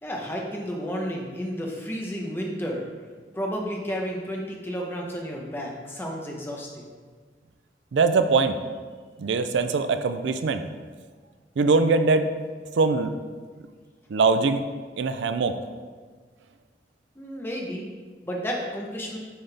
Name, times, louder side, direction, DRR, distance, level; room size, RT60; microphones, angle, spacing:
voice 1, 0.0-2.9 3.3-6.9 17.2-17.9 18.3-19.2, equal, 10° left, -1 dB, 0.8 m, -32 dB
voice 2, 7.9-8.6 9.2-10.6 11.6-12.3 12.8-13.1 14.1-14.6 15.0-15.6, right 4 dB, 80° right, 10 dB, 0.4 m, -22 dB
9.4 x 3.9 x 3.4 m, 1.5 s
head